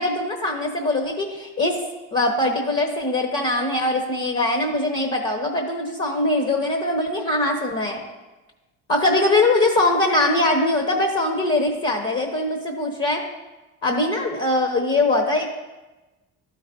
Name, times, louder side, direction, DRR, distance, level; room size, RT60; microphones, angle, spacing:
voice 1, 0.0-1.8 2.1-8.1 8.9-13.2 13.8-15.5, left 2 dB, 35° left, 2 dB, 1.2 m, -22 dB
12.5 x 5.2 x 2.6 m, 1.1 s
supercardioid pair, 80°, 39 cm